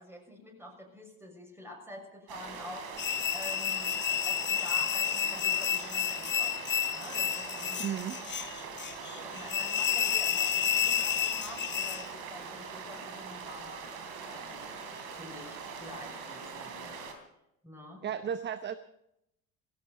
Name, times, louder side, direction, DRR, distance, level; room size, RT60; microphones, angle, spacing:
voice 1, 0.0-2.9 3.3-4.0 4.2-8.0 9.0-17.1 17.6-18.1, left 1 dB, 5° right, 1 dB, 6.5 m, -47 dB
sound 1, 2.3-17.1, right 5 dB, 60° right, 3.3 m, -42 dB
sound 2, 3.0-12.1, left 10 dB, 25° left, 0.7 m, -30 dB
voice 2, 7.8-8.2 18.0-18.8, right 8 dB, 25° right, 13 dB, 0.8 m, -34 dB
19.5 x 17.0 x 4.1 m, 0.81 s
figure-of-eight pair, 55°, 41 cm